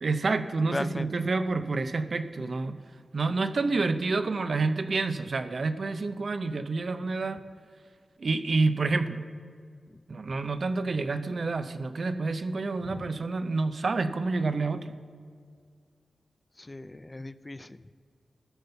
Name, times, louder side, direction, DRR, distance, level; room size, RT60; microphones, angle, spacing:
voice 1, 0.0-2.8 3.1-7.4 8.2-9.2 10.1-15.0, right 3 dB, 60° right, 11 dB, 0.6 m, -28 dB
voice 2, 0.7-1.3 12.8-13.1 16.6-17.8, left 2 dB, 25° left, 15 dB, 0.3 m, -37 dB
13.5 x 5.4 x 6.8 m, 2.1 s
cardioid pair, 60°, 0 cm